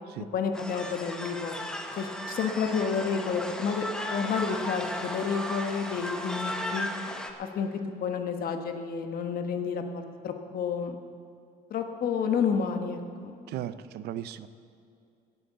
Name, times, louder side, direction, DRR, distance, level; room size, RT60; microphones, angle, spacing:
voice 1, 0.3-1.5 1.9-6.9 7.4-7.7 8.0-11.0 11.7-13.3, left 6 dB, 60° left, 6 dB, 1.3 m, -30 dB
sound 1, 0.5-7.3, equal, 5° left, 1.1 m, -35 dB
voice 2, 13.5-14.5, right 11 dB, 75° right, 14 dB, 0.6 m, -36 dB
17.5 x 7.8 x 6.8 m, 2.5 s
cardioid pair, 110°, 17 cm